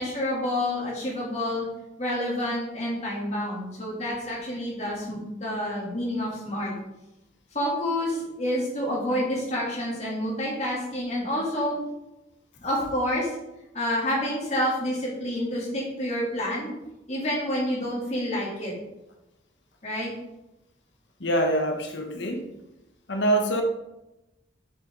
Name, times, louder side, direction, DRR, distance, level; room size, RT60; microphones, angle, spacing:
voice 1, 0.0-1.6 2.0-6.7 7.5-11.8 12.6-13.3 13.7-16.7 17.1-18.7 19.8-20.1, left 1 dB, 35° left, -5 dB, 2.9 m, -28 dB
voice 2, 21.2-22.5 23.1-23.6, right 1 dB, 65° left, 3 dB, 1.2 m, -25 dB
7.8 x 6.7 x 3.9 m, 0.93 s
head